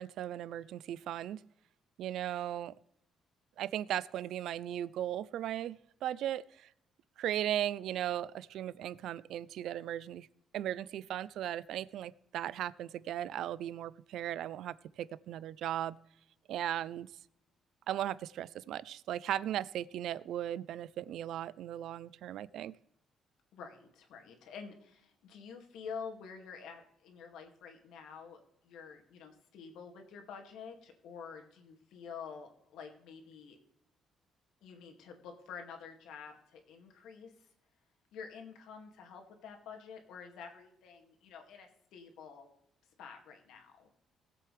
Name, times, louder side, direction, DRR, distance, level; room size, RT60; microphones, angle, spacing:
voice 1, 0.0-1.4 2.0-2.7 3.6-6.7 7.2-10.3 10.5-16.0 16.5-17.1 17.9-22.7, right 11 dB, 70° right, 19 dB, 0.4 m, -37 dB
voice 2, 23.5-33.6 34.6-37.3 38.1-42.5 43.0-43.9, left 6 dB, 85° left, 3 dB, 2.2 m, -48 dB
20.5 x 7.7 x 3.3 m, 0.77 s
cardioid pair, 155°, 0 cm